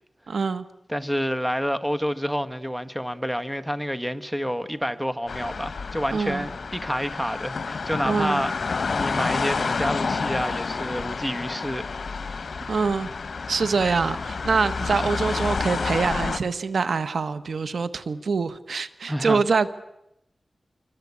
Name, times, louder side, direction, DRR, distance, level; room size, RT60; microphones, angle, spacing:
voice 1, 0.3-0.7 6.1-6.5 8.0-8.4 12.7-13.1 13.5-19.7, right 4 dB, 85° right, 1.2 m, -24 dB
voice 2, 0.9-8.5 8.9-11.9 19.1-19.4, equal, 5° right, 1.6 m, -28 dB
sound 1, 5.3-16.4, left 4 dB, 75° left, 1.1 m, -29 dB
27.5 x 24.5 x 8.5 m
wide cardioid pair, 70°, 0 cm